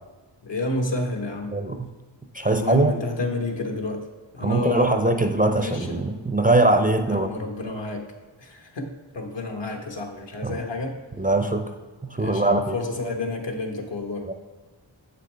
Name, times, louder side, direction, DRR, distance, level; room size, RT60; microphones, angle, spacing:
voice 1, 0.4-1.6 2.5-4.1 4.3-5.0 5.6-6.0 7.1-8.0 8.4-11.0 12.2-14.3, left 2 dB, 65° left, 2 dB, 1.2 m, -30 dB
voice 2, 1.5-1.9 2.3-2.9 4.4-7.3 10.4-10.6 11.2-11.7 12.0-12.8 14.2-14.3, right 2 dB, 20° right, 6 dB, 0.5 m, -21 dB
7.2 x 6.6 x 3.3 m, 1.4 s
cardioid pair, 50°, 47 cm